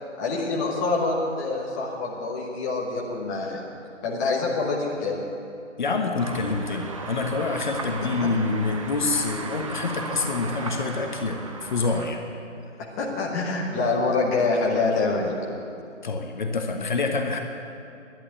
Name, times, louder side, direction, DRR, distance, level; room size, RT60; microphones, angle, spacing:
voice 1, 0.2-3.6 4.0-5.2 13.0-15.4, left 3 dB, 15° left, -4 dB, 1.1 m, -25 dB
voice 2, 5.8-12.2 16.0-17.4, left 3 dB, 40° left, 3 dB, 1.2 m, -26 dB
sound 1, 6.2-12.1, right 3 dB, 25° right, 0.8 m, -35 dB
11.5 x 11.0 x 9.1 m, 2.7 s
figure-of-eight pair, 155°, 38 cm